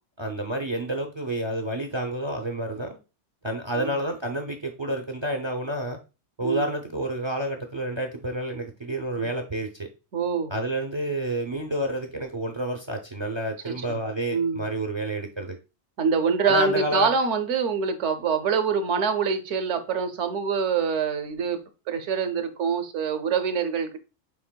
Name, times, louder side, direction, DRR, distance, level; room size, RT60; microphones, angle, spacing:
voice 1, 0.2-3.0 3.4-6.0 6.4-9.9 10.5-15.6 16.4-17.1, right 1 dB, 40° right, 5 dB, 0.4 m, -29 dB
voice 2, 10.1-10.5 13.6-14.0 14.3-14.7 16.0-21.6 21.9-24.0, right 5 dB, 80° right, 8 dB, 1.0 m, -25 dB
7.0 x 3.3 x 2.2 m, 0.31 s
omnidirectional pair, 1.2 m